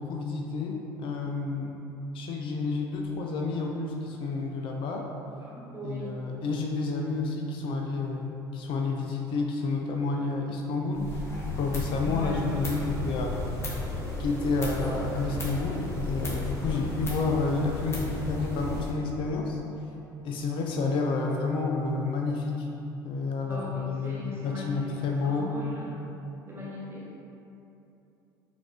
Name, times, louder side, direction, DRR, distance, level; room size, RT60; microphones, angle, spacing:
voice 1, 0.0-1.8 2.1-5.1 5.8-11.1 11.5-13.3 14.2-19.6 20.2-22.7 23.0-25.5, left 3 dB, 50° left, 1 dB, 0.4 m, -30 dB
voice 2, 5.4-6.1 12.0-13.0 15.1-15.5 16.6-16.9 23.5-26.0 26.5-27.0, left 1 dB, 20° right, -6 dB, 1.3 m, -40 dB
sound 1, 10.9-18.9, left 2 dB, 25° left, 1.2 m, -34 dB
4.7 x 2.5 x 3.4 m, 2.8 s
hypercardioid pair, 65°, 11 cm